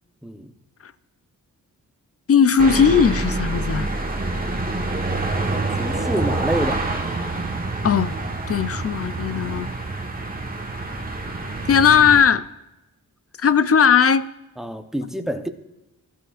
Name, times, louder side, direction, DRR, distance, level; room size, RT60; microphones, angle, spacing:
voice 1, 0.2-0.5 5.8-6.9 14.6-15.5, right 1 dB, ahead, 0.8 m, -27 dB
voice 2, 2.3-3.9 7.8-8.1 8.5-9.7 11.5-12.5 13.4-14.3, left 7 dB, 40° left, 0.5 m, -17 dB
sound 1, 2.6-12.2, right 2 dB, 25° right, 1.4 m, -26 dB
20.5 x 13.0 x 2.5 m
wide cardioid pair, 110°, 35 cm